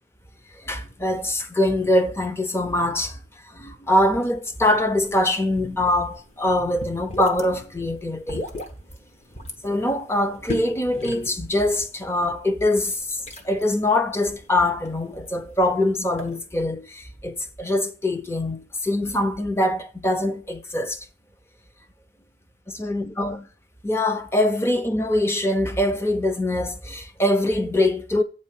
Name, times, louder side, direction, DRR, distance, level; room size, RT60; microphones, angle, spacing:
voice 1, 0.7-3.2 3.6-8.4 9.6-13.0 13.4-21.0 22.8-23.4 23.8-28.2, left 1 dB, 15° left, 0.7 m, -23 dB
sound 1, 4.5-16.4, left 1 dB, 40° left, 1.3 m, -38 dB
8.4 x 4.3 x 7.3 m
head